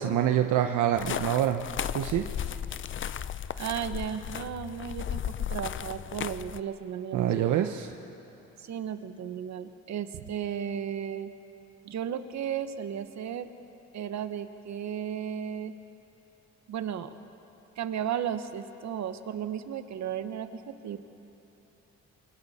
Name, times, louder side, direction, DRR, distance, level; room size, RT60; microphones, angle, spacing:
voice 1, 0.0-1.6 1.9-2.2 7.1-7.9, right 10 dB, 80° right, 6 dB, 0.9 m, -26 dB
sound 1, 1.0-6.6, left 9 dB, 40° left, 0.5 m, -35 dB
voice 2, 3.6-5.2 5.5-7.7 8.6-11.3 11.8-13.5 13.9-15.7 16.7-17.1 17.8-21.0, right 9 dB, 65° right, 10 dB, 1.2 m, -34 dB
28.0 x 22.5 x 4.3 m, 3.0 s
cardioid pair, 90°, 30 cm